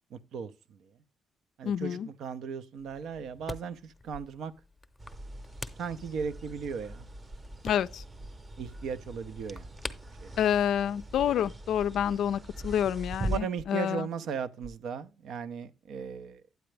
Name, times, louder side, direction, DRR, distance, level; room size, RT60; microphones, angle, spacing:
voice 1, 0.1-0.5 1.6-4.5 5.8-7.0 8.6-9.7 10.2-10.3 13.3-16.4, right 6 dB, 75° right, 0.6 m, -36 dB
voice 2, 1.6-2.1 7.6-8.0 10.4-14.1, left 9 dB, 75° left, 0.3 m, -28 dB
sound 1, 2.8-11.5, left 2 dB, 15° left, 0.8 m, -47 dB
sound 2, 4.1-4.4 5.1-5.3 6.2-6.4 7.3-7.5 8.2-8.4 9.3-9.5 10.3-10.5 11.1-11.3 11.8-12.0 12.6-12.9 13.6-13.9 14.6-14.7, right 1 dB, 55° right, 1.1 m, -49 dB
sound 3, 5.0-13.4, right 1 dB, 25° right, 0.7 m, -41 dB
9.3 x 7.7 x 3.2 m
cardioid pair, 90°, 0 cm